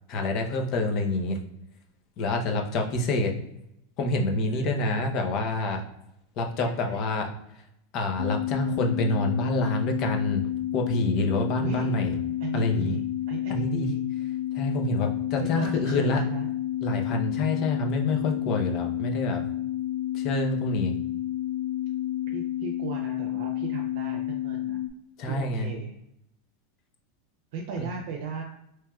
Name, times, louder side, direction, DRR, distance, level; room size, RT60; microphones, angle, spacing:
voice 1, 0.1-1.4 2.2-3.3 4.0-5.8 6.4-7.3 7.9-10.5 10.7-12.2 12.5-13.0 13.5-13.9 14.5-16.2 16.8-19.4 20.1-20.9 25.2-25.7 27.8-27.9, left 2 dB, 35° left, 3 dB, 0.7 m, -27 dB
voice 2, 4.5-4.9 6.6-7.1 11.6-12.0 12.4-14.0 15.4-16.5 22.3-24.8 25.3-25.9 27.5-28.4, right 5 dB, 60° right, 1 dB, 0.6 m, -37 dB
sound 1, 8.2-24.9, left 13 dB, 85° left, 0.4 m, -30 dB
4.5 x 3.1 x 2.3 m, 0.81 s
supercardioid pair, 160°, 0 cm